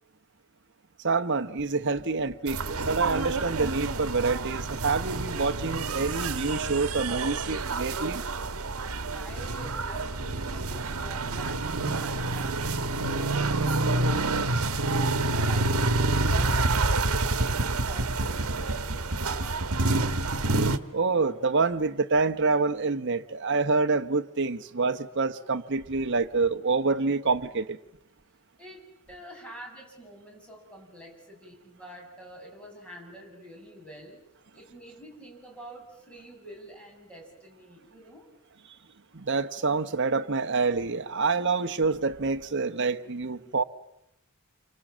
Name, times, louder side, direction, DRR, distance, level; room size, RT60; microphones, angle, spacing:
voice 1, 1.0-8.2 20.9-27.8 39.1-43.6, right 4 dB, 55° right, 1.0 m, -27 dB
sound 1, 2.5-20.8, right 2 dB, 75° right, 1.4 m, -28 dB
voice 2, 9.1-14.3 14.7-19.3 28.6-34.2 34.5-38.3, equal, 5° left, 6.8 m, -47 dB
28.5 x 25.5 x 7.4 m
head